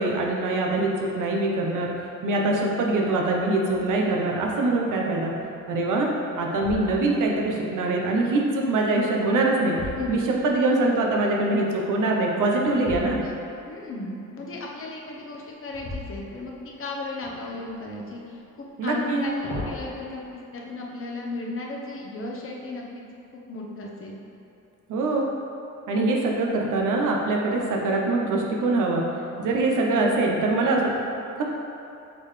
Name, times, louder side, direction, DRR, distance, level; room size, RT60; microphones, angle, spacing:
voice 1, 0.0-1.9 2.2-5.3 5.7-6.1 6.4-9.8 10.1-13.2 18.8-19.2 24.9-25.3 25.9-29.0 29.4-30.9 31.4-31.5, right 2 dB, 75° right, -1 dB, 0.9 m, -23 dB
sound 1, 3.7-4.1 4.6-4.7 5.4-5.9 6.5-7.4 9.0-10.7 12.8-13.6 15.7-16.8 17.2-18.0 19.0-19.9, left 2 dB, 85° left, 1.4 m, -38 dB
voice 2, 13.6-23.0 23.3-24.2, left 2 dB, 45° left, -2 dB, 1.0 m, -35 dB
7.0 x 4.0 x 3.3 m, 2.8 s
cardioid pair, 110°, 32 cm